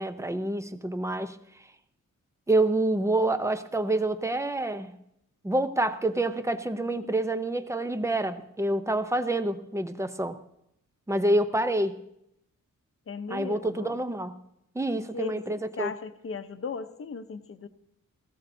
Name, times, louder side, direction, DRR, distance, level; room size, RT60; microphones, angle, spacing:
voice 1, 0.0-1.4 2.5-5.0 5.4-10.4 11.1-12.0 13.3-14.4 14.7-15.9, right 2 dB, 10° right, 10 dB, 0.6 m, -27 dB
voice 2, 13.1-14.0 14.9-15.4 15.8-17.7, left 5 dB, 45° left, 10 dB, 0.8 m, -37 dB
17.5 x 16.0 x 2.7 m, 0.79 s
wide cardioid pair, 155°, 31 cm